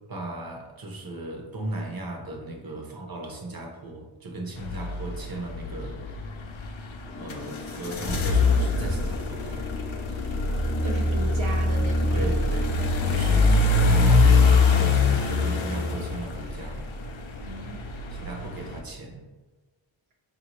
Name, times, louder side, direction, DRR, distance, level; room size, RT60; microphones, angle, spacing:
voice 1, 0.1-6.0 7.2-9.7 12.1-12.8 13.1-16.9 18.2-19.2, right 2 dB, 50° right, 0 dB, 0.9 m, -36 dB
sound 1, 4.6-18.8, left 3 dB, 80° left, 0.6 m, -24 dB
sound 2, 7.0-14.6, left 5 dB, 15° left, 0.4 m, -40 dB
voice 2, 10.8-12.3 17.4-18.0, right 2 dB, 75° right, 0 dB, 0.6 m, -36 dB
4.7 x 2.7 x 3.0 m, 1.3 s
wide cardioid pair, 55°, 47 cm